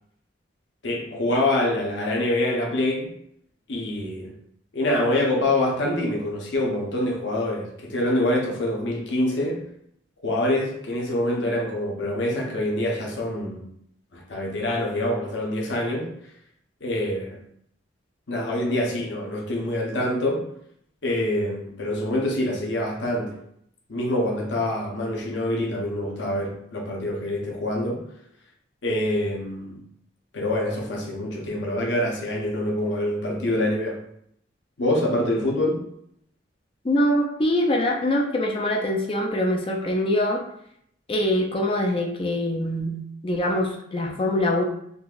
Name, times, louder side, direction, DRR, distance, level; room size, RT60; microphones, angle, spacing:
voice 1, 0.8-3.1 3.7-4.3 4.7-9.7 10.2-13.6 14.1-16.1 16.8-17.4 18.3-20.5 21.0-23.4 23.9-28.0 28.8-29.8 30.3-34.0 34.8-35.8, left 1 dB, 65° left, -1 dB, 0.8 m, -25 dB
voice 2, 36.8-40.4 41.1-44.6, left 1 dB, 30° left, 1 dB, 0.4 m, -24 dB
3.8 x 2.6 x 2.4 m, 0.72 s
head